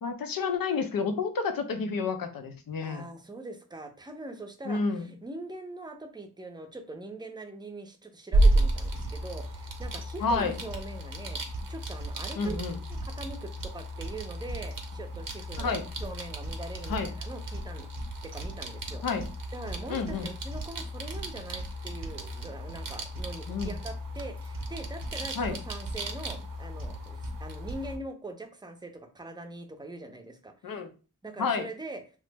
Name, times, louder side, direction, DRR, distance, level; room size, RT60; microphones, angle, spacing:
voice 1, 0.0-3.0 4.7-5.0 10.2-10.5 12.4-12.8 15.6-15.9 16.9-17.1 19.0-19.3 19.9-20.3 23.5-23.7 25.4-25.6 30.6-30.9 31.4-31.7, left 4 dB, 85° left, 7 dB, 0.6 m, -30 dB
voice 2, 2.8-11.4 11.7-12.6 12.9-17.9 18.2-19.0 19.5-30.8 31.2-32.0, right 2 dB, 15° right, 5 dB, 0.5 m, -42 dB
broken harddrive, 8.3-28.0, right 1 dB, 70° right, 0.7 m, -32 dB
2.9 x 2.0 x 3.3 m, 0.35 s
wide cardioid pair, 70°, 34 cm